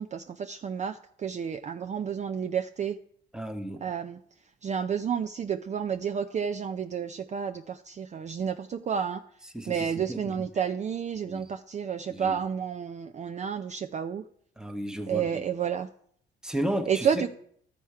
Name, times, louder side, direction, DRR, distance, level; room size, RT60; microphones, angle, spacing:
voice 1, 0.0-3.0 3.8-4.2 4.6-9.2 9.7-14.2 15.1-15.9 16.9-17.3, right 7 dB, 35° right, 0.4 m, -30 dB
voice 2, 3.3-3.8 9.5-10.4 11.3-11.4 12.1-12.4 14.6-15.4 16.4-17.3, right 1 dB, 5° right, 1.0 m, -33 dB
13.0 x 4.3 x 4.7 m
cardioid pair, 90°, 20 cm